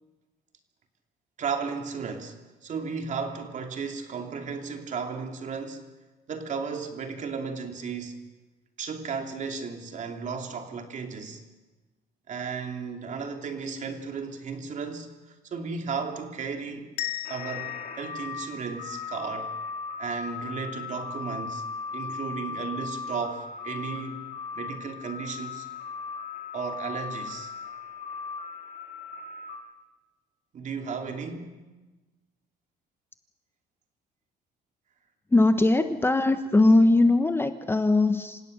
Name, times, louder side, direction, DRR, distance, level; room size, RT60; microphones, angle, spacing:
voice 1, 1.4-5.9 6.3-8.2 8.8-11.4 12.3-16.9 17.3-19.5 20.0-21.6 21.9-24.3 24.5-25.7 26.5-27.5 30.5-31.5, right 5 dB, 45° right, 4 dB, 2.9 m, -34 dB
sound 1, 17.0-19.8, left 14 dB, 85° left, 1.3 m, -38 dB
sound 2, 17.2-29.6, left 4 dB, 55° left, 3.6 m, -37 dB
voice 2, 35.3-38.4, left 2 dB, 15° left, 9 dB, 1.0 m, -20 dB
27.5 x 17.0 x 6.6 m, 1.2 s
cardioid pair, 110°, 17 cm